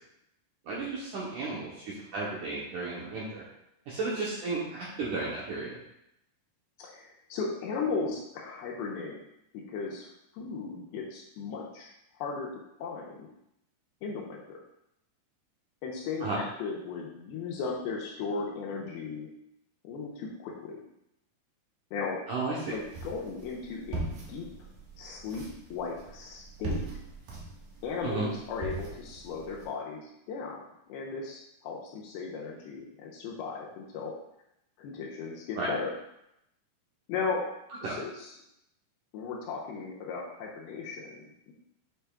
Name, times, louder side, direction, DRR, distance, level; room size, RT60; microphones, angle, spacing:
voice 1, 0.7-3.5 3.9-5.8 16.2-16.4 22.3-22.7 28.0-28.3 35.6-35.7 37.8-38.0, right 3 dB, 75° right, -6 dB, 1.8 m, -33 dB
voice 2, 6.8-9.2 9.5-10.1 10.3-11.9 12.2-12.5 12.8-13.3 14.0-14.6 15.8-19.3 19.8-20.8 21.9-22.2 22.7-24.5 25.0-26.9 27.8-30.0 30.3-30.6 30.9-34.1 34.8-35.9 37.1-37.5 37.9-38.3 39.1-41.5, left 4 dB, 80° left, -2 dB, 2.5 m, -36 dB
sound 1, 22.7-29.7, right 3 dB, 60° right, 2.3 m, -41 dB
8.9 x 5.4 x 2.3 m, 0.82 s
omnidirectional pair, 4.9 m